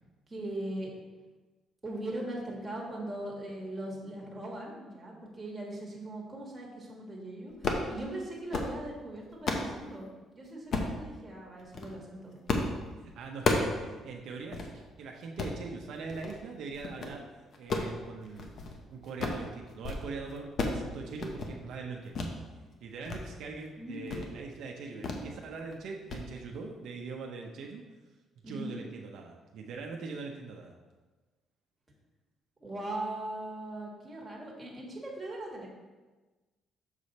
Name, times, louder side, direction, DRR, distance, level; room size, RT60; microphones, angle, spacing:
voice 1, 0.3-0.9 1.8-12.4 23.8-24.4 24.7-25.1 28.4-28.8 32.6-35.7, right 1 dB, 15° right, -3 dB, 1.6 m, -40 dB
sound 1, 7.5-7.9 8.3-8.7 9.2-9.7 10.7-11.0 11.6-11.9 12.5-12.7 13.0-13.8 14.1-14.2 14.5-14.7 15.2-15.6 16.1-16.4 16.7-17.2 17.5-18.8 19.0-19.5 19.7-20.0 20.3-20.8 21.1-21.5 22.1-22.3 22.7-23.2 23.5-23.7 24.1-24.3 25.0-25.3 25.6-25.8 26.1-26.2, left 3 dB, 45° left, 0.8 m, -32 dB
voice 2, 13.0-17.2 17.6-18.6 18.9-22.2 22.8-27.8 28.5-30.8, right 4 dB, 70° right, 1 dB, 0.6 m, -42 dB
6.7 x 4.9 x 4.1 m, 1.2 s
cardioid pair, 140°, 0 cm